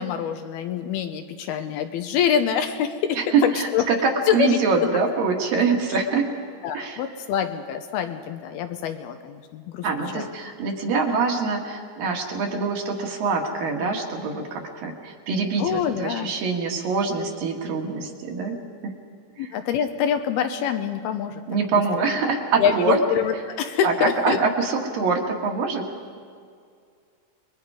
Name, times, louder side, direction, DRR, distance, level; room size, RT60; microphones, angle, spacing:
voice 1, 0.0-3.9 4.3-4.6 6.6-9.9 10.1-10.3 15.6-16.3 19.4-21.6 22.6-24.4, left 8 dB, 75° left, 7 dB, 2.6 m, -25 dB
voice 2, 3.2-6.3 6.7-7.0 9.8-18.6 18.8-18.9 19.4-19.5 21.5-23.0 23.8-25.9, right 4 dB, 60° right, 1 dB, 3.3 m, -24 dB
29.5 x 21.5 x 4.9 m, 2.2 s
omnidirectional pair, 4.8 m